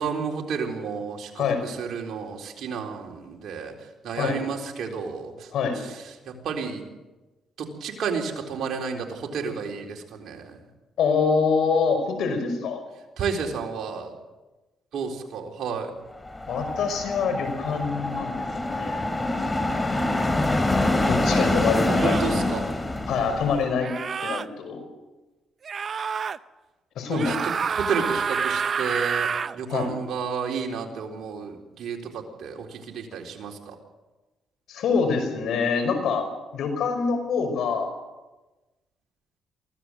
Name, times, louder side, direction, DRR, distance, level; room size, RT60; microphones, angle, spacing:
voice 1, 0.0-3.7 4.0-5.5 5.8-6.8 7.6-10.6 13.2-14.1 14.9-15.9 21.9-22.6 27.1-33.8, right 5 dB, 70° right, 2 dB, 3.9 m, -31 dB
voice 2, 11.0-12.8 16.5-18.5 18.8-19.0 21.1-22.4 23.1-24.0 24.2-24.8 27.0-27.4 29.7-29.9 34.7-36.3 36.5-37.9, left 5 dB, 75° left, 7 dB, 5.2 m, -25 dB
sound 1, 16.3-23.7, left 2 dB, 15° left, 2.9 m, -25 dB
sound 2, 20.5-20.7 21.9-22.3 23.8-24.5 25.6-26.4 27.1-29.6, right 6 dB, 45° right, 0.7 m, -28 dB
23.5 x 16.5 x 7.8 m, 1.1 s
cardioid pair, 90°, 0 cm